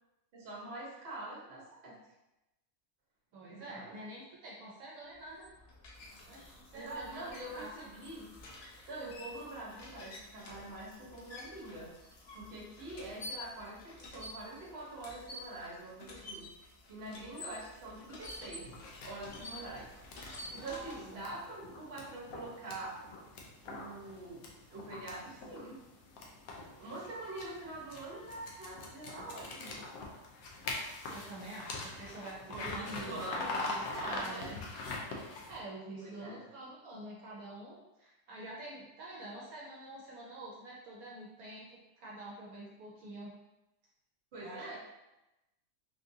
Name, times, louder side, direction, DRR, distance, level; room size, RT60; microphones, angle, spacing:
voice 1, 0.3-1.9 3.5-3.9 6.7-8.3 8.9-11.9 12.3-16.5 16.9-18.7 19.0-19.9 20.3-23.0 23.6-24.4 24.7-25.8 26.8-29.7 32.5-34.5 36.0-36.5 44.3-44.8, right 2 dB, 45° right, -5 dB, 1.1 m, -44 dB
voice 2, 3.3-5.5 6.3-7.1 7.5-7.9 20.6-21.2 31.1-34.6 35.5-43.3 44.4-44.8, right 2 dB, 75° right, -5 dB, 1.1 m, -47 dB
sound 1, 5.2-21.4, left 1 dB, 60° left, 0.7 m, -50 dB
sound 2, 18.7-35.6, left 3 dB, 80° left, 1.0 m, -44 dB
3.7 x 2.5 x 2.6 m, 0.96 s
omnidirectional pair, 1.6 m